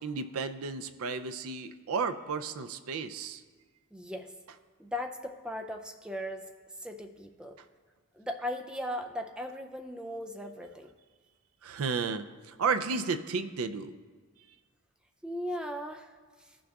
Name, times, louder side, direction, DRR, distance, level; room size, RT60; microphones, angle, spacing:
voice 1, 0.0-3.4 11.6-12.2 12.6-13.9, right 5 dB, 80° right, 9 dB, 0.5 m, -32 dB
voice 2, 3.9-4.3 4.8-6.5 6.8-7.6 8.1-10.9 15.2-16.6, left 1 dB, 5° right, 4 dB, 0.4 m, -38 dB
15.5 x 6.2 x 2.3 m, 1.5 s
head